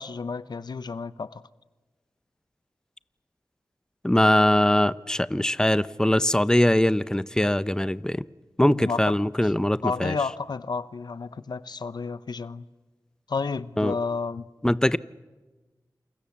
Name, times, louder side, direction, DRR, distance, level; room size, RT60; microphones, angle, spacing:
voice 1, 0.0-1.4 8.7-9.1 9.4-9.5 9.8-12.6 13.3-14.5, left 4 dB, 80° left, 0.8 m, -31 dB
voice 2, 4.0-8.2 8.6-10.2 13.8-13.9 14.6-15.0, left 1 dB, 10° left, 0.8 m, -22 dB
28.5 x 28.0 x 7.3 m
cardioid pair, 40°, 7 cm